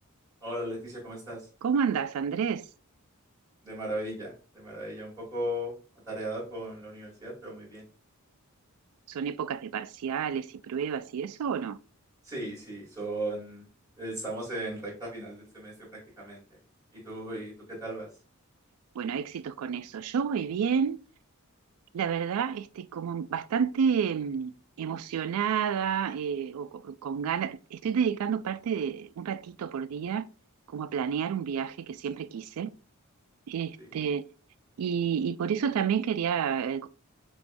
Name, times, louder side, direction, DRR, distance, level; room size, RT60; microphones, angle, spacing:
voice 1, 0.4-1.4 3.6-5.7 6.1-7.8 12.2-13.6 14.0-16.4 16.9-18.1 33.8-33.9, right 1 dB, 15° right, 2.1 m, -37 dB
voice 2, 1.6-2.6 9.1-11.8 19.0-21.0 21.9-30.3 30.7-32.7 33.5-34.2 34.8-36.9, right 7 dB, 80° right, 0.3 m, -30 dB
5.9 x 2.3 x 2.6 m
head